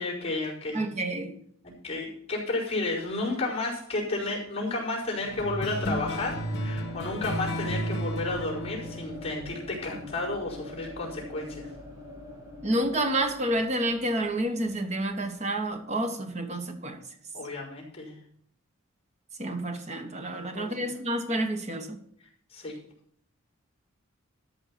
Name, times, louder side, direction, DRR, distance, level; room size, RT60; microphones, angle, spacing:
voice 1, 0.0-0.8 1.6-11.6 17.3-18.1 20.3-20.9 22.5-22.7, left 2 dB, 30° left, 4.7 m, -32 dB
voice 2, 0.7-1.4 12.6-17.0 19.4-22.0, right 1 dB, 30° right, 1.3 m, -29 dB
sound 1, 5.2-17.0, left 2 dB, 15° right, 2.7 m, -45 dB
sound 2, 5.4-10.3, equal, 50° left, 1.7 m, -33 dB
13.5 x 5.8 x 5.9 m
head